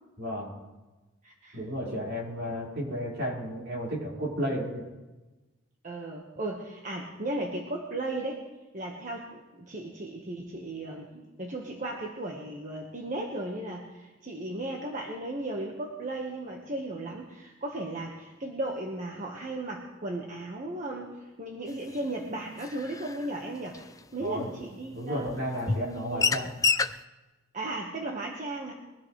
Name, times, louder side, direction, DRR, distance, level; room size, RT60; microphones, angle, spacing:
voice 1, 0.2-0.5 1.5-4.8 24.2-24.5 24.9-26.5, equal, 65° right, -4 dB, 5.3 m, -33 dB
voice 2, 1.2-2.1 5.8-8.4 8.7-23.8 24.1-25.3 25.7-26.3 27.5-28.7, right 2 dB, 40° right, -1 dB, 1.5 m, -36 dB
sound 1, 21.9-22.0 22.6-23.3 23.7-23.8 24.6-24.7 25.3-25.4 25.7-25.9 26.2-26.9, left 5 dB, 15° left, 0.4 m, -27 dB
23.0 x 14.5 x 3.3 m, 1.1 s
head